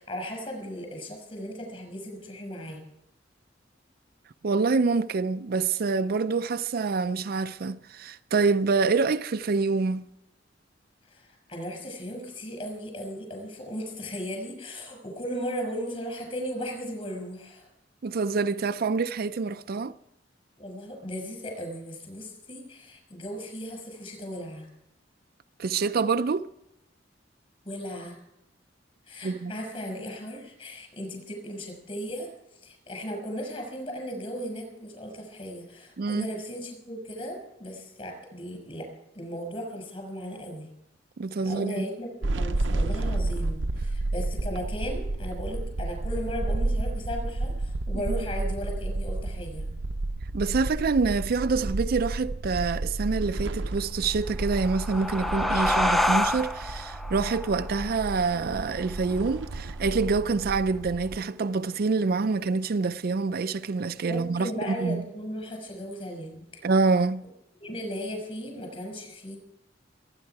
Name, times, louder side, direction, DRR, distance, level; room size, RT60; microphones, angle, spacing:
voice 1, 0.0-2.8 11.0-17.7 20.6-24.7 27.6-28.2 29.0-32.3 32.6-38.9 39.1-40.7 41.4-49.7 64.1-66.6 67.6-69.4, equal, 30° left, 6.0 m, -36 dB
voice 2, 4.4-10.1 18.0-19.9 25.6-26.5 29.2-29.6 36.0-36.3 41.2-41.9 47.9-48.0 50.3-65.0 66.6-67.2, right 4 dB, 55° right, 0.4 m, -26 dB
sound 1, 42.2-61.2, right 2 dB, 85° right, 0.7 m, -31 dB
sound 2, 54.4-59.6, left 1 dB, ahead, 0.5 m, -29 dB
23.5 x 9.8 x 4.7 m
head